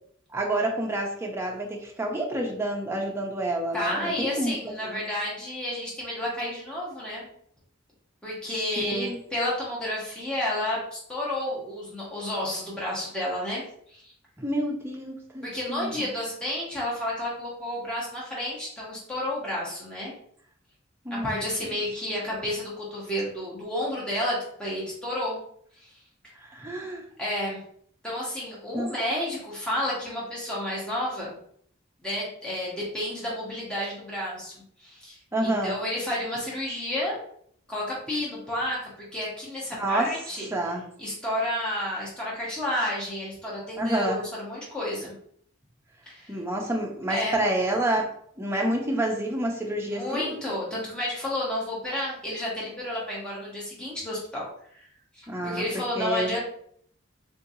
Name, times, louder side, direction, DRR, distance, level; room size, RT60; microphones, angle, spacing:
voice 1, 0.3-5.0 8.8-9.2 14.4-16.1 21.0-21.4 26.4-27.0 28.7-28.9 35.3-35.8 39.8-40.2 40.5-40.9 43.8-44.2 46.3-48.1 48.4-50.3 55.3-56.4, right 1 dB, 10° right, 0 dB, 0.6 m, -28 dB
voice 2, 3.7-7.3 8.2-13.6 13.9-14.1 15.4-20.1 21.2-25.4 25.8-25.9 27.2-27.6 28.0-31.4 32.0-34.5 34.8-37.2 37.7-40.5 41.0-45.1 46.1-46.3 47.1-47.4 49.9-54.4 54.7-54.9 55.4-56.4, left 1 dB, 5° left, -6 dB, 1.0 m, -31 dB
3.7 x 2.8 x 2.7 m, 0.63 s
head